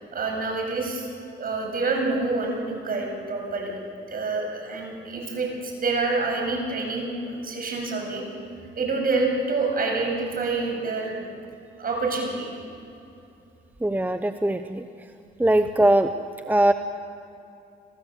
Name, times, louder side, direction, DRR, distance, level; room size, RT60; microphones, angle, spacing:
voice 1, 0.1-1.1 1.4-3.7 4.1-8.2 8.8-11.2 11.8-12.5, right 3 dB, 45° right, 1 dB, 7.7 m, -27 dB
voice 2, 13.8-14.8 15.4-16.1 16.4-16.7, right 1 dB, 10° right, 8 dB, 0.8 m, -20 dB
26.5 x 17.5 x 8.2 m, 2.7 s
cardioid pair, 90°, 20 cm